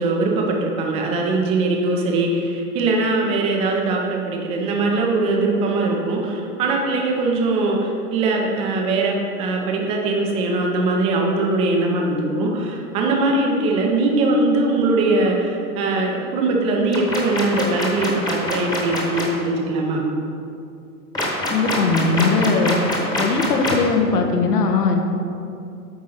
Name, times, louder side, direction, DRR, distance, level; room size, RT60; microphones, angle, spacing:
voice 1, 0.0-20.1, right 2 dB, 15° right, 0 dB, 0.4 m, -21 dB
sound 1, 16.9-19.2 21.1-23.9, left 1 dB, 10° left, 1.0 m, -24 dB
voice 2, 21.5-22.8 23.2-25.0, left 4 dB, 85° left, 3 dB, 1.2 m, -19 dB
8.6 x 3.7 x 5.6 m, 2.6 s
hypercardioid pair, 135°, 46 cm